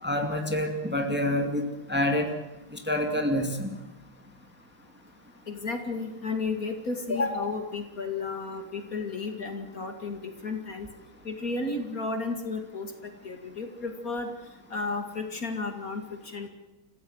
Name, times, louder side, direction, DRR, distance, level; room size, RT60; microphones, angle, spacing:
voice 1, 0.0-2.3 2.7-3.7, left 1 dB, 5° right, 4 dB, 2.2 m, -27 dB
voice 2, 5.5-10.9 11.2-14.3 14.7-16.5, left 3 dB, 45° left, 6 dB, 2.6 m, -33 dB
30.0 x 15.5 x 8.0 m, 1.0 s
omnidirectional pair, 2.1 m